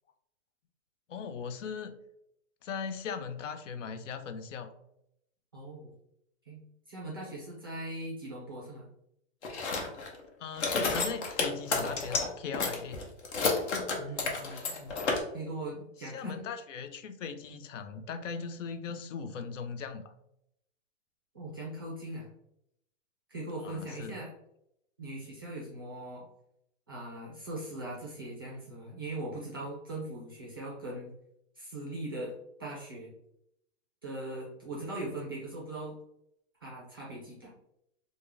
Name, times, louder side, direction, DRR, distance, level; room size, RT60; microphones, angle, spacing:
voice 1, 1.1-2.0 2.6-4.7 10.4-13.0 16.0-20.1 23.6-24.2, left 6 dB, 80° left, 9 dB, 0.6 m, -39 dB
voice 2, 5.5-5.9 6.4-8.9 14.0-15.0 15.3-16.5 17.5-17.6 21.3-22.3 23.3-24.3 25.0-26.2 26.9-31.1 31.6-32.3 32.6-33.1 34.0-36.0 36.6-37.5, right 1 dB, 20° right, -4 dB, 0.3 m, -40 dB
sound 1, 9.4-10.2 10.6-12.3 12.5-15.2, left 4 dB, 65° left, 0.9 m, -30 dB
3.5 x 2.1 x 3.3 m, 0.79 s
hypercardioid pair, 170°, 37 cm